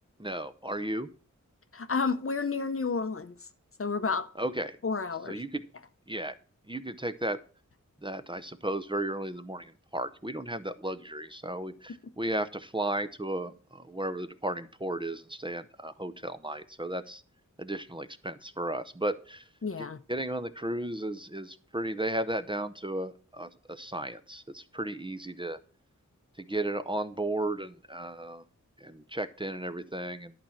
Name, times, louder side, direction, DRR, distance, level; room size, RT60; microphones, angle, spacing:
voice 1, 0.2-1.1 4.4-4.8 5.3-5.6 6.1-6.3 6.7-7.4 8.0-17.2 17.6-19.4 19.8-25.6 26.4-28.4 28.8-30.3, right 1 dB, 15° right, 0.7 m, -34 dB
voice 2, 1.7-3.4 3.8-4.3 4.8-5.4 19.6-20.0, left 4 dB, 45° left, 0.7 m, -30 dB
11.0 x 4.5 x 7.0 m
wide cardioid pair, 65°, 31 cm